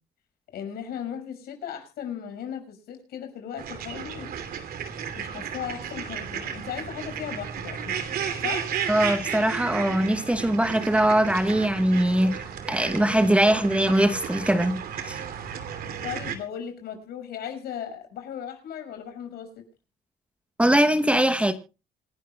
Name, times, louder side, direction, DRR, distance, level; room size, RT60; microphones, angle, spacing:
voice 1, 0.5-4.3 5.2-8.0 8.4-8.7 16.0-19.5, left 9 dB, 70° left, 6.1 m, -36 dB
sound 1, 3.6-16.4, right 7 dB, 60° right, 2.8 m, -33 dB
voice 2, 8.9-15.2 20.6-21.5, right 1 dB, 5° right, 1.1 m, -22 dB
27.0 x 12.0 x 2.3 m
cardioid pair, 110°, 17 cm